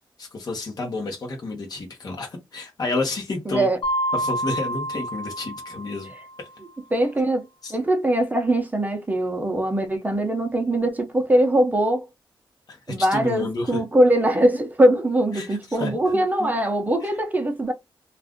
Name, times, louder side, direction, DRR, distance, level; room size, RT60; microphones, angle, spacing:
voice 1, 0.2-3.7 4.1-6.1 6.4-6.5 7.6-7.8 12.7-13.8 15.3-16.5 17.0-17.1, left 2 dB, 50° left, 1.0 m, -30 dB
voice 2, 3.5-3.8 6.9-12.0 12.9-17.7, right 1 dB, 20° right, 0.7 m, -21 dB
Mallet percussion, 3.8-6.4, equal, 80° left, 1.0 m, -28 dB
2.5 x 2.4 x 3.5 m
wide cardioid pair, 125°, 9 cm